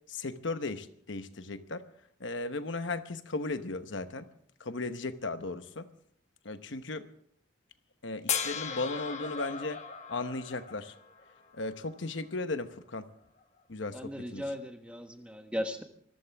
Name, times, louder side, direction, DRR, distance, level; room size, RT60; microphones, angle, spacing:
voice 1, 0.1-1.8 2.2-4.3 4.6-5.9 6.4-7.1 8.0-9.8 10.1-10.9 11.5-13.1 13.7-14.5, left 3 dB, 70° left, 1.0 m, -36 dB
sound 1, 8.3-11.5 13.6-13.7, left 7 dB, 35° left, 1.3 m, -36 dB
voice 2, 13.9-15.8, equal, 5° right, 1.2 m, -37 dB
25.5 x 14.5 x 3.5 m
head